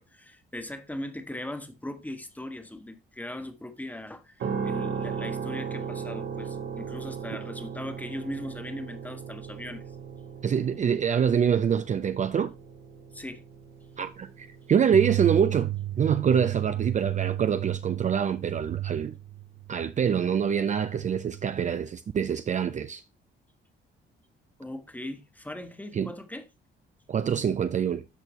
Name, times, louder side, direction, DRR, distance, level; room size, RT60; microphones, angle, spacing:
voice 1, 0.0-9.8 13.1-13.4 24.6-26.5, left 1 dB, 10° left, 1.3 m, -39 dB
sound 1, 4.4-18.4, right 6 dB, 70° right, 1.6 m, -38 dB
voice 2, 10.4-12.5 14.0-15.7 16.0-19.2 19.7-23.0 25.9-26.1 27.1-28.0, right 7 dB, 40° right, 0.4 m, -25 dB
sound 2, 14.9-21.7, right 14 dB, 90° right, 0.6 m, -33 dB
12.5 x 4.4 x 3.0 m
cardioid pair, 90°, 20 cm